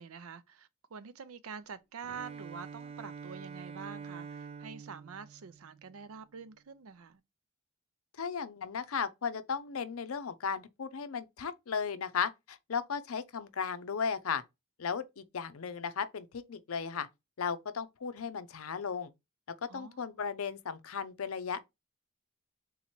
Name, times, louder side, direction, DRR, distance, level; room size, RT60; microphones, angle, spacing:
voice 1, 0.0-7.2 19.7-20.0, right 6 dB, 90° right, 0.5 m, -46 dB
Bowed string instrument, 2.0-6.1, right 6 dB, 30° right, 0.4 m, -46 dB
voice 2, 8.2-14.4 14.8-17.1 17.4-19.1 19.7-21.6, left 6 dB, 85° left, 0.6 m, -35 dB
3.9 x 3.0 x 4.3 m
head